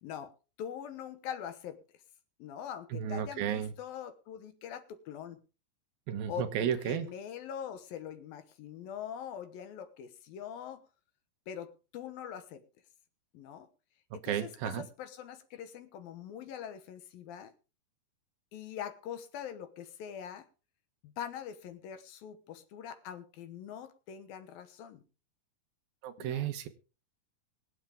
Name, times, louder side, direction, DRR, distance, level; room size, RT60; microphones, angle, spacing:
voice 1, 0.0-1.8 2.4-5.4 6.3-10.8 11.5-12.6 13.3-13.7 14.1-17.5 18.5-20.5 21.0-25.0 26.2-26.4, left 9 dB, 70° left, 2.8 m, -43 dB
voice 2, 2.9-3.7 6.1-7.1 14.2-14.9 26.0-26.7, right 9 dB, 70° right, 2.8 m, -33 dB
24.0 x 8.1 x 3.5 m
omnidirectional pair, 4.6 m